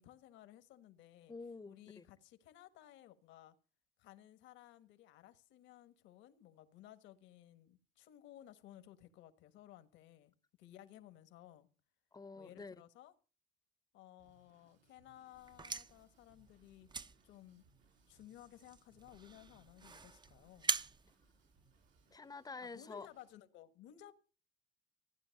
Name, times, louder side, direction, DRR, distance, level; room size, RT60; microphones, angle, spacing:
voice 1, 0.0-1.3 1.6-3.5 4.0-10.3 10.6-11.7 12.3-13.1 13.9-17.6 18.1-20.7 22.7-24.1, left 12 dB, 80° left, 1.5 m, -58 dB
voice 2, 1.3-2.0 12.1-12.7 22.1-23.1, left 4 dB, 20° left, 0.8 m, -48 dB
Drum kit / Drum, 14.2-23.4, right 4 dB, 85° right, 5.5 m, -73 dB
sound 1, 15.3-22.2, right 4 dB, 25° right, 0.7 m, -44 dB
15.5 x 9.9 x 6.6 m
supercardioid pair, 85°, 19 cm